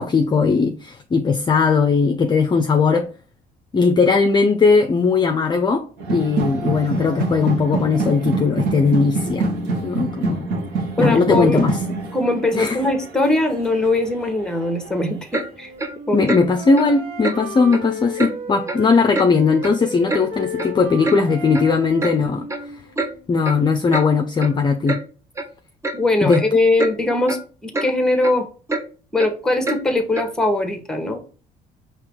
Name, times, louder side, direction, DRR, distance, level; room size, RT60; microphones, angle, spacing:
voice 1, 0.0-3.1 3.7-5.8 6.1-9.5 9.8-10.5 11.0-11.8 12.5-12.8 16.1-22.5 23.3-25.0 26.2-26.4, left 4 dB, 25° left, 0.5 m, -18 dB
sound 1, 6.0-14.9, right 3 dB, 90° right, 1.5 m, -26 dB
voice 2, 11.0-11.6 12.1-15.7 16.1-16.5 25.9-28.5 29.1-31.2, left 2 dB, 5° left, 1.1 m, -21 dB
Clock, 15.3-15.5 15.8-15.9 16.3-16.4 16.8-16.9 17.2-17.4 17.7-17.9 18.2-18.3 18.7-18.8 19.2-19.3 19.6-20.2 20.6-20.7 21.0-21.2 21.5-21.7 22.0-22.2 22.5-22.6 23.0-23.1 23.4-23.6 23.9-24.1 24.4-24.5 24.9-25.0 25.4-25.5 25.8-26.0 26.3-26.5 26.8-26.9 27.3-27.4 27.7-27.9 28.2-28.3 28.7-28.8 29.2-29.3 29.6-29.8 30.2-30.3, right 2 dB, 15° right, 0.7 m, -26 dB
Wind instrument woodwind instrument, 15.5-19.0 19.3-23.3, left 1 dB, 70° right, 1.8 m, -34 dB
5.0 x 3.0 x 3.5 m
cardioid pair, 110°, 17 cm